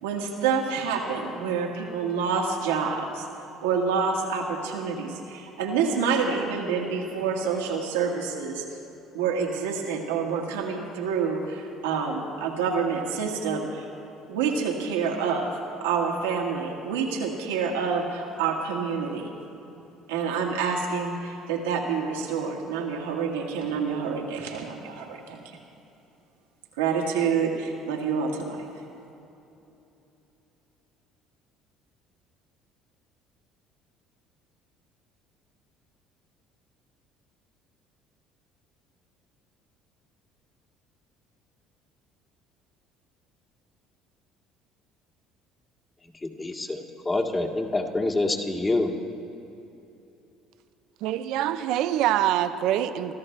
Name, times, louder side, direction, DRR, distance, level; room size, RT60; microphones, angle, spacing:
voice 1, 0.0-8.8 9.1-13.9 14.3-19.3 20.1-25.4 26.8-28.6, right 5 dB, 90° right, 0 dB, 1.8 m, -27 dB
voice 2, 46.0-48.9, left 2 dB, 25° left, 1 dB, 2.0 m, -27 dB
voice 3, 51.0-53.1, right 12 dB, 70° right, 10 dB, 0.6 m, -25 dB
24.5 x 14.0 x 3.3 m, 3.0 s
hypercardioid pair, 70°, 0 cm